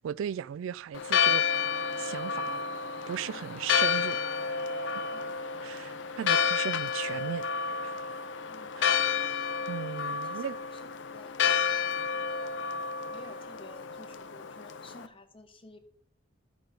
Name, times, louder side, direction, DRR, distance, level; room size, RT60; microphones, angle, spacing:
voice 1, 0.0-1.4 2.0-2.6 3.1-4.2 5.6-7.4 7.8-7.9 8.8-9.0 9.7-10.6, right 9 dB, 85° right, 0.3 m, -36 dB
Church bell, 0.9-15.0, left 7 dB, 65° left, 0.5 m, -30 dB
Wind instrument woodwind instrument, 1.4-6.2, right 6 dB, 45° right, 1.1 m, -53 dB
voice 2, 8.5-8.9 10.0-10.4 10.7-11.4 13.1-15.8, left 2 dB, 30° left, 0.9 m, -52 dB
12.0 x 5.1 x 5.8 m
head